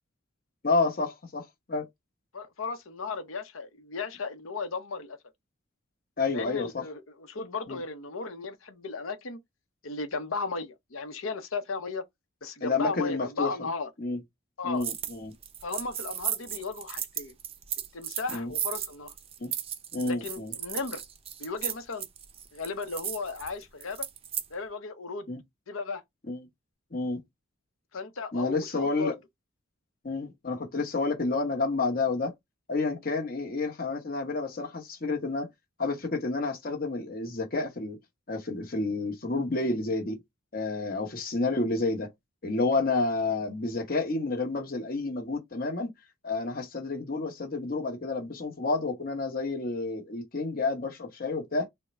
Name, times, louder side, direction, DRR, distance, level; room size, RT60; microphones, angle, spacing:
voice 1, 0.6-1.9 6.2-6.8 7.7-7.8 12.6-13.5 14.0-14.2 14.6-15.3 18.3-18.5 19.4-19.5 19.9-20.5 25.3-25.4 26.3-26.5 26.9-27.2 28.3-29.1 30.0-32.3 32.7-35.5 35.8-38.0 38.3-40.2 40.5-42.1 42.4-45.9 46.2-51.7, left 3 dB, 45° left, 1.0 m, -30 dB
voice 2, 2.3-5.2 6.3-9.4 9.8-12.0 12.4-13.9 14.6-14.8 15.6-17.3 17.9-19.1 20.0-21.0 21.4-22.1 22.5-24.1 24.5-25.3 25.7-26.0 27.9-29.1 40.9-41.0, left 4 dB, 85° left, 0.8 m, -35 dB
sound 1, 14.8-15.2 15.4-24.5, right 10 dB, 30° right, 0.4 m, -35 dB
3.5 x 2.2 x 4.1 m
head